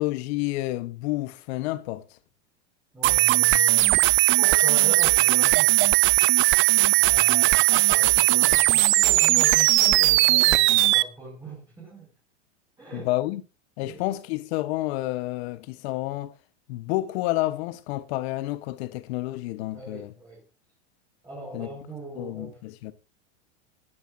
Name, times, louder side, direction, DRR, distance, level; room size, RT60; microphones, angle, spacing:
voice 1, 0.0-2.0 12.9-13.4 13.8-16.3 16.7-20.1 21.5-21.7 22.2-22.9, left 17 dB, 60° left, 1.2 m, -29 dB
voice 2, 2.9-6.1 7.0-12.1 12.8-13.1 13.9-14.1 19.7-20.4 21.2-22.6, right 3 dB, 10° right, 5.6 m, -40 dB
sound 1, 3.0-11.0, right 19 dB, 35° right, 0.5 m, -19 dB
19.0 x 10.5 x 2.7 m
hypercardioid pair, 115°, 36 cm